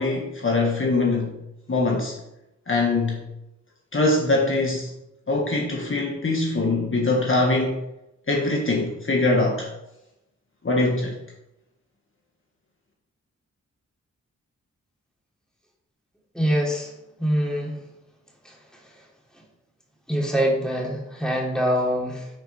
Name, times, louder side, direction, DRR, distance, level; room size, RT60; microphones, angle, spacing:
voice 1, 0.0-1.3 1.7-2.1 2.7-3.2 3.9-4.9 5.3-7.8 8.3-9.7 10.6-11.2, left 2 dB, 40° left, -1 dB, 1.6 m, -22 dB
voice 2, 16.3-16.9 17.2-17.8 18.4-18.6 18.8-19.0 20.1-22.3, equal, ahead, -2 dB, 2.9 m, -24 dB
9.7 x 4.5 x 4.3 m, 0.89 s
cardioid pair, 45°, 31 cm